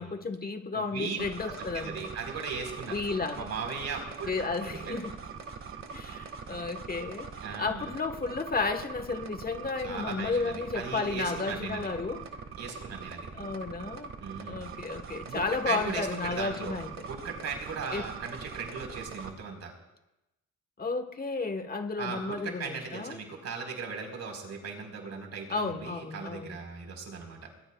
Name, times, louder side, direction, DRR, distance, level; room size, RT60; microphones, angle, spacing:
voice 1, 0.0-2.1 2.9-3.5 4.3-5.1 5.9-7.3 7.6-12.2 13.3-14.1 14.4-16.9 17.9-18.0 20.8-23.2 25.5-26.6, left 4 dB, 30° left, 7 dB, 1.3 m, -33 dB
voice 2, 0.7-2.9 3.3-4.3 4.7-5.0 7.4-7.9 9.8-11.9 12.5-13.3 14.2-14.6 15.3-19.7 22.0-27.5, right 5 dB, 60° right, 3 dB, 4.3 m, -38 dB
sound 1, 1.2-19.3, right 5 dB, 45° right, 1.8 m, -42 dB
23.0 x 20.0 x 2.3 m, 0.96 s
cardioid pair, 90°, 30 cm